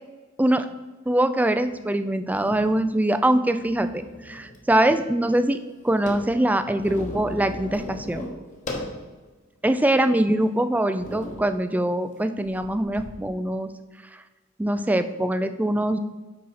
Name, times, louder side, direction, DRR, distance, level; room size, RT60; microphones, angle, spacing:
voice 1, 1.1-8.3 9.6-13.7 14.6-16.0, right 1 dB, 10° right, 10 dB, 0.3 m, -23 dB
sound 1, 1.6-1.7 2.3-2.9 3.5-4.6 4.9-5.0 5.2-9.0 9.6-9.7 10.4-10.5 11.0-11.5 12.4-13.0, left 1 dB, 35° left, 1.2 m, -37 dB
8.5 x 5.5 x 4.1 m, 1.3 s
head